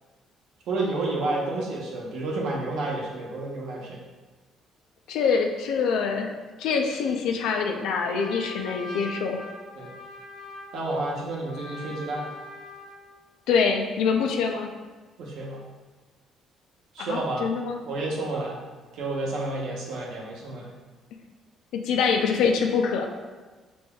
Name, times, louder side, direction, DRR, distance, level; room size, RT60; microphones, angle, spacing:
voice 1, 0.7-4.0 9.8-9.9 10.7-12.3 15.2-15.6 16.9-17.5 17.9-18.6 18.9-20.7, right 2 dB, 65° right, -3 dB, 0.9 m, -30 dB
voice 2, 5.1-6.3 6.6-9.4 13.5-14.7 17.0-17.8 21.7-23.0, left 5 dB, 90° left, 3 dB, 0.5 m, -25 dB
Trumpet, 7.5-13.1, left 2 dB, 50° left, 0.8 m, -42 dB
6.8 x 2.6 x 2.3 m, 1.3 s
cardioid pair, 170°, 0 cm